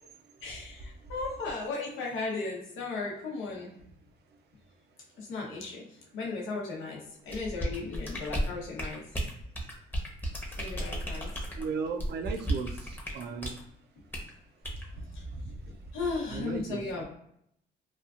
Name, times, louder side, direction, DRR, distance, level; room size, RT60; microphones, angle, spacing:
voice 1, 0.4-3.7 5.2-5.8 6.1-9.0 10.6-11.3 15.1-15.2 15.9-17.0, left 3 dB, 85° left, -3 dB, 0.8 m, -36 dB
sound 1, 7.3-13.6 14.1-14.3 14.6-14.9, right 1 dB, 10° left, 0.8 m, -34 dB
voice 2, 11.6-13.6 15.0-15.6 16.3-17.0, right 5 dB, 55° right, 6 dB, 0.5 m, -36 dB
2.9 x 2.3 x 2.4 m, 0.72 s
cardioid pair, 90°, 20 cm